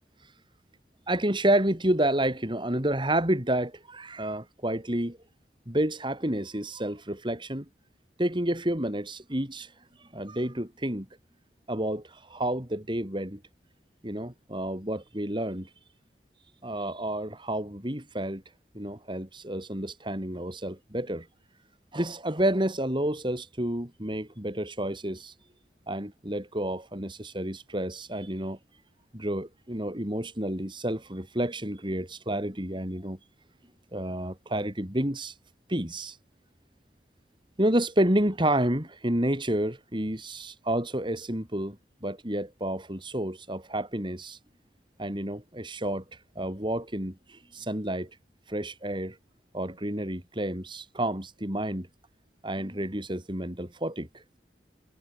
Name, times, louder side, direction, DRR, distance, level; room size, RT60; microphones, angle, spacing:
voice 1, 1.1-5.2 5.7-7.7 8.2-9.7 10.0-11.1 11.7-13.4 14.0-15.7 16.6-18.4 18.7-21.3 21.9-25.3 25.9-28.6 29.1-33.2 33.9-35.3 35.7-36.2 37.6-44.4 45.0-46.0 46.4-48.1 48.5-49.2 49.5-51.9 52.4-54.2, right 1 dB, 25° right, 4.0 m, -30 dB
head